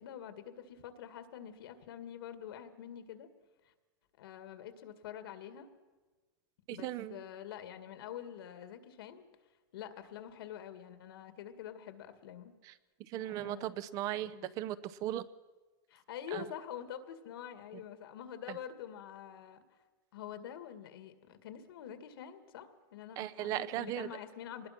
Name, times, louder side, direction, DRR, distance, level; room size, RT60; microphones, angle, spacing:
voice 1, 0.0-3.3 4.2-5.7 6.7-9.3 9.7-12.5 13.2-13.7 14.2-14.6 15.9-19.6 20.1-24.7, left 9 dB, 75° left, 10 dB, 2.1 m, -46 dB
voice 2, 6.7-7.2 12.6-12.7 13.1-15.3 16.3-16.4 18.5-18.6 23.2-24.1, right 13 dB, 30° right, 17 dB, 0.6 m, -37 dB
24.5 x 20.5 x 6.0 m, 1.3 s
supercardioid pair, 170°, 12 cm